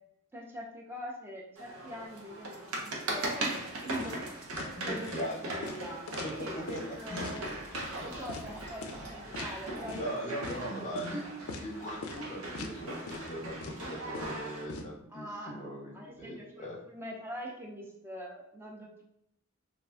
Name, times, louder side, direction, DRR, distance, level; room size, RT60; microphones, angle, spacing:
voice 1, 0.3-4.4 4.8-7.5 8.0-11.3 15.1-15.6 15.9-19.0, equal, 10° right, -2 dB, 0.5 m, -43 dB
sound 1, 1.6-14.7, right 2 dB, 70° right, 0.6 m, -39 dB
sound 2, 4.0-4.3 4.5-4.7 5.1-5.3 5.6-6.9 7.2-7.4 7.7-7.9 8.3-8.5 8.8-9.1 9.3-9.5 9.9-10.1 10.4-10.6 11.0-11.1 11.5-11.7 12.0-12.2 12.5-12.8 13.1-13.3 13.6-14.8, left 3 dB, 80° left, 0.4 m, -42 dB
voice 2, 4.7-5.5 6.2-6.8 7.1-7.4 8.0-8.2 9.9-11.2 11.6-16.8, equal, 35° left, 0 dB, 0.6 m, -40 dB
Fill (with liquid), 6.2-10.2, right 1 dB, 50° right, 1.0 m, -51 dB
2.5 x 2.2 x 3.3 m, 0.79 s
head